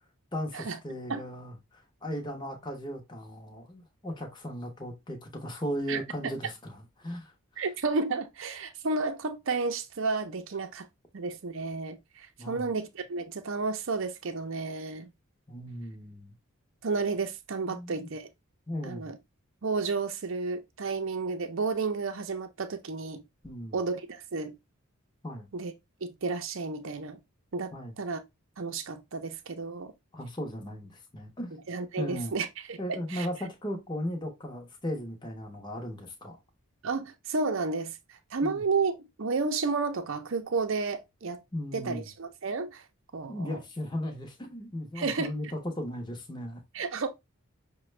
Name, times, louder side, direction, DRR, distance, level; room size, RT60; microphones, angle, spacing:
voice 1, 0.3-7.6 12.4-12.7 15.5-16.3 17.7-18.1 18.7-19.1 23.4-23.8 25.2-25.5 27.7-27.9 30.1-31.6 32.0-32.3 32.8-36.4 38.4-38.6 41.5-42.1 43.3-46.6, equal, 20° left, 0.7 m, -37 dB
voice 2, 7.6-10.9 11.1-15.1 16.8-18.3 18.8-19.2 19.6-23.2 23.7-24.5 25.5-25.7 26.0-27.2 27.5-28.2 28.6-29.9 31.7-33.3 36.8-41.4 41.7-42.8 43.1-43.6 45.0-45.5 46.7-47.1, right 4 dB, 60° right, 0.6 m, -32 dB
5.9 x 2.2 x 3.1 m
head